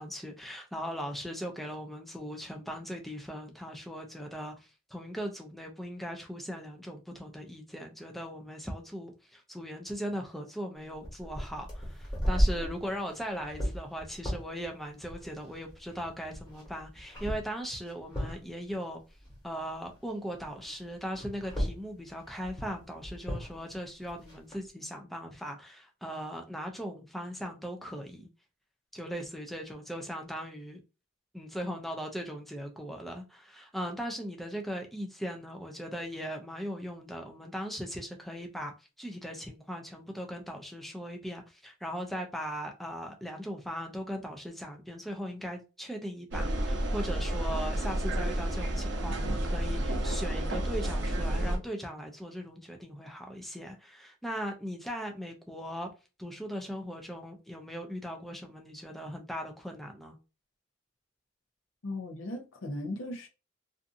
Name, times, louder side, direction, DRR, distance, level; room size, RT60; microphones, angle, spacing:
voice 1, 0.0-19.0 19.4-28.3 28.9-30.8 31.3-38.7 39.0-55.9 56.2-60.2, equal, ahead, 0.3 m, -39 dB
sound 1, 10.9-20.1 20.4-24.6, equal, 20° left, 1.3 m, -35 dB
sound 2, 46.3-51.6, right 1 dB, 65° right, 0.6 m, -30 dB
voice 2, 61.8-63.3, left 1 dB, 75° left, 0.6 m, -37 dB
2.6 x 2.5 x 2.4 m
head